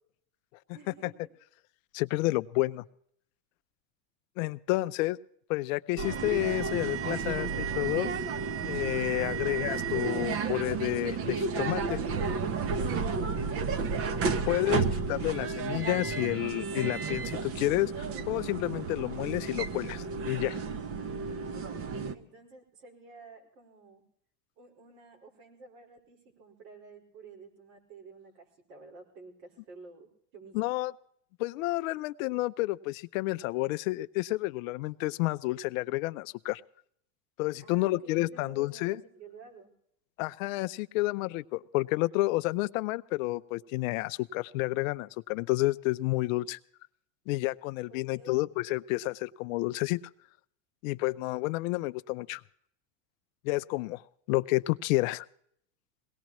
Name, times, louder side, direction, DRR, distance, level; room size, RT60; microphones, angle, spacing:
voice 1, 0.7-1.1 22.1-24.0 24.6-30.7 37.6-39.7 47.9-48.4, right 4 dB, 70° right, 1 dB, 5.0 m, -52 dB
voice 2, 1.9-2.8 4.4-5.2 5.5-8.1 8.7-12.0 14.5-20.6 30.5-30.9 31.4-36.6 37.4-39.0 40.2-46.6 47.3-50.0 50.8-52.4 53.4-54.0 54.3-55.3, left 19 dB, 55° left, 14 dB, 0.6 m, -30 dB
sound 1, 6.0-22.2, right 5 dB, 30° right, 0.8 m, -32 dB
22.0 x 18.0 x 3.0 m, 0.66 s
supercardioid pair, 125°, 48 cm